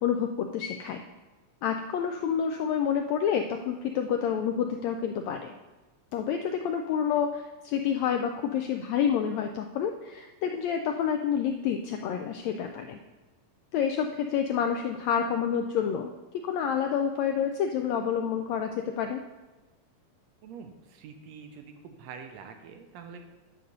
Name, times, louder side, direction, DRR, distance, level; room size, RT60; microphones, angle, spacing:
voice 1, 0.0-1.0 1.6-5.5 6.1-13.0 13.7-16.1 16.4-19.2, left 8 dB, 80° left, 5 dB, 1.6 m, -28 dB
voice 2, 20.4-23.3, right 6 dB, 75° right, 6 dB, 1.6 m, -45 dB
9.9 x 3.9 x 6.6 m, 1.2 s
omnidirectional pair, 3.5 m